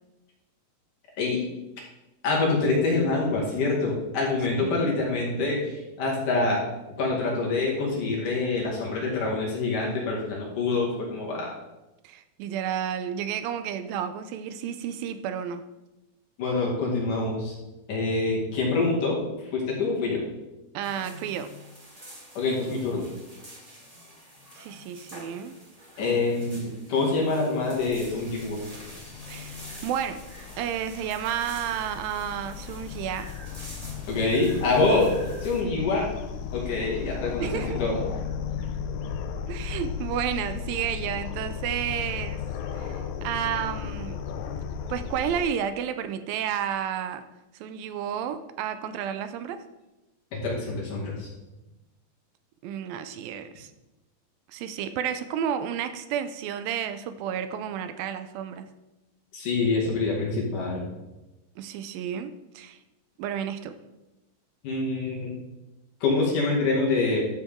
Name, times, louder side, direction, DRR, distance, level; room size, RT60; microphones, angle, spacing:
voice 1, 2.2-6.6 7.0-11.5 16.4-17.6 17.9-19.2 19.5-20.2 22.4-23.1 26.0-28.6 34.1-36.2 36.5-38.1 50.3-51.3 59.3-60.9 64.6-65.3 66.0-67.3, left 3 dB, 65° left, -3 dB, 3.6 m, -26 dB
voice 2, 4.6-5.0 12.0-15.6 20.7-21.5 24.6-25.6 29.3-30.2 30.6-33.3 37.4-37.8 39.5-42.4 42.7-44.2 44.9-47.2 47.5-49.6 52.6-53.7 54.5-58.7 61.6-62.8 63.2-63.8, right 9 dB, 80° right, 10 dB, 2.3 m, -31 dB
sound 1, 20.8-35.6, left 1 dB, 40° right, 0.5 m, -45 dB
sound 2, 27.8-45.4, left 7 dB, 80° left, 1.7 m, -35 dB
12.5 x 7.0 x 3.6 m, 1.0 s
omnidirectional pair, 4.2 m